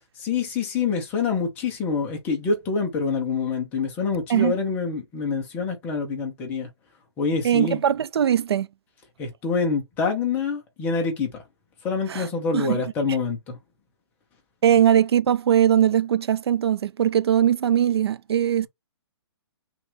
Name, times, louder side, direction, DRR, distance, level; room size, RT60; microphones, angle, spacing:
voice 1, 0.2-6.7 7.2-7.8 9.2-11.4 11.8-13.6, left 5 dB, 10° left, 0.8 m, -26 dB
voice 2, 7.4-8.7 12.1-12.3 12.5-12.8 14.6-18.7, right 10 dB, 65° right, 0.4 m, -20 dB
5.9 x 2.5 x 3.4 m
hypercardioid pair, 175°, 15 cm